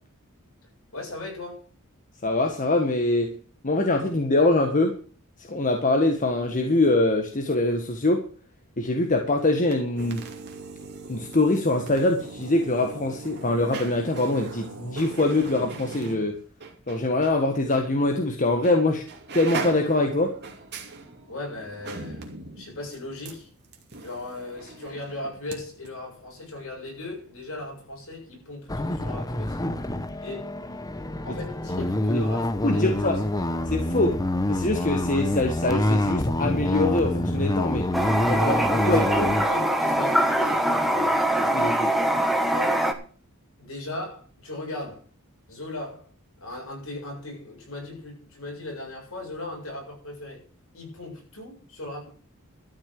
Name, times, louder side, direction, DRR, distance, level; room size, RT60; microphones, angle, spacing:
voice 1, 0.9-1.6 21.3-22.3 22.5-23.5 24.0-29.6 30.2-30.6 31.2-33.1 33.4-33.5 38.2-41.2 42.5-42.9 43.6-45.0 45.5-46.1 46.4-50.4 50.7-52.1, left 2 dB, 65° left, 7.4 m, -37 dB
voice 2, 2.2-3.4 3.6-4.9 5.5-8.2 8.8-10.3 11.1-16.4 16.9-19.0 19.3-20.3 31.3-31.4 32.1-32.2 32.6-33.2 33.7-34.2 34.5-37.9 38.3-38.4 38.9-39.3 41.4-41.9, left 2 dB, 35° left, 1.5 m, -23 dB
sound 1, 9.6-17.4 17.7-17.9 18.6-18.8 19.1-25.6 25.8-25.9, right 3 dB, 50° right, 2.5 m, -39 dB
sound 2, 28.7-39.4, left 1 dB, 15° left, 0.8 m, -26 dB
Toilet flush, 37.9-42.9, right 1 dB, ahead, 1.4 m, -23 dB
13.0 x 6.3 x 7.6 m
head